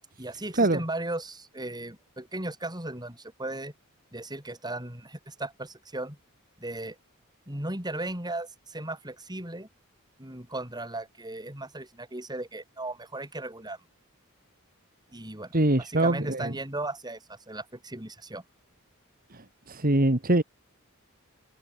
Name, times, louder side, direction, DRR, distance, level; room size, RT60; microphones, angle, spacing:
voice 1, 0.2-3.7 4.1-6.2 6.6-7.0 7.5-9.7 10.2-13.8 15.1-18.4, right 2 dB, 20° right, 6.7 m, -36 dB
voice 2, 15.5-16.5 19.7-20.4, right 1 dB, 40° right, 2.2 m, -23 dB
open air
head